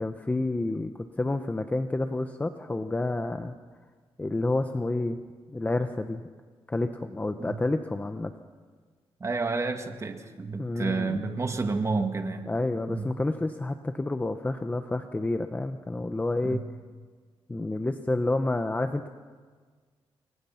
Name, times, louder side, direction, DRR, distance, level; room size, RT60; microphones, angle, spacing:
voice 1, 0.0-3.5 4.2-5.2 5.5-6.2 6.7-8.3 10.6-11.2 12.5-16.6 17.5-19.1, left 2 dB, 15° left, 7 dB, 1.0 m, -29 dB
voice 2, 9.2-12.5 12.9-13.1 16.4-16.6, right 3 dB, 30° right, 5 dB, 2.1 m, -30 dB
29.0 x 23.0 x 5.8 m, 1.5 s
cardioid pair, 105°, 10 cm